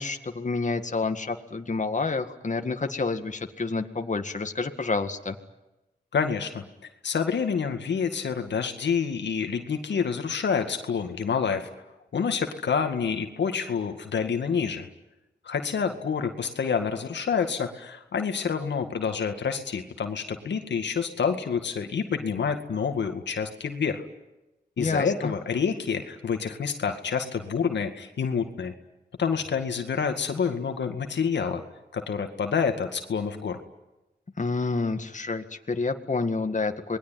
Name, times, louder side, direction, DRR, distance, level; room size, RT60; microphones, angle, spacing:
voice 1, 0.0-5.4 24.8-25.3 34.4-37.0, left 3 dB, 45° left, 6 dB, 2.0 m, -29 dB
voice 2, 6.1-6.6 7.0-11.7 12.1-14.9 15.4-24.0 24.8-28.7 29.2-31.6 31.9-33.6, left 6 dB, 85° left, 6 dB, 2.1 m, -28 dB
27.5 x 20.5 x 9.3 m, 0.98 s
cardioid pair, 55°, 18 cm